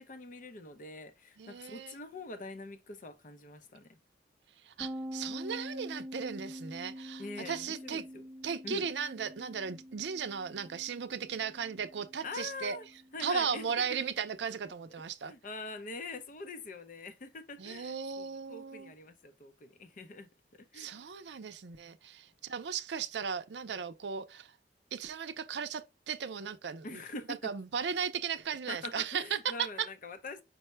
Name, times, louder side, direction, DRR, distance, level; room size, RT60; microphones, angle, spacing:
voice 1, 0.0-4.0 7.2-8.2 8.6-8.8 12.2-12.9 13.1-14.0 15.2-20.9 26.8-27.4 28.7-30.4, left 3 dB, 50° left, 0.6 m, -44 dB
voice 2, 1.4-2.0 4.6-8.0 8.4-12.8 13.2-15.3 17.6-18.9 20.7-24.6 24.9-27.0 27.3-29.7, right 6 dB, 75° right, 0.5 m, -36 dB
sound 1, 4.8-14.3, equal, 10° right, 0.6 m, -46 dB
5.3 x 2.2 x 4.3 m
head